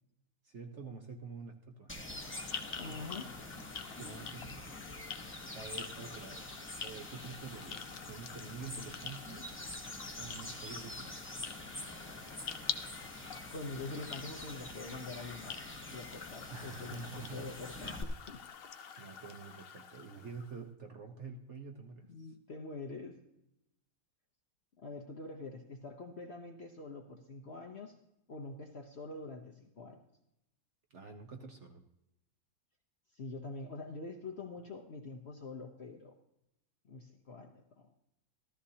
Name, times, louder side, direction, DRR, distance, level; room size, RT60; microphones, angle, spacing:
voice 1, 0.4-2.0 4.0-4.7 5.5-6.5 6.8-9.5 10.2-11.4 16.5-17.5 19.0-22.3 30.9-31.9, right 4 dB, 50° right, 3 dB, 1.0 m, -47 dB
sound 1, 1.9-18.0, left 1 dB, 10° left, 0.8 m, -46 dB
sound 2, 2.1-20.6, left 7 dB, 65° left, 0.6 m, -47 dB
voice 2, 2.8-3.3 13.5-15.6 15.9-18.4 22.1-23.2 24.8-28.0 28.3-30.0 33.1-36.1 36.9-37.9, left 3 dB, 45° left, 3 dB, 0.9 m, -45 dB
14.0 x 14.0 x 2.8 m, 0.86 s
omnidirectional pair, 1.9 m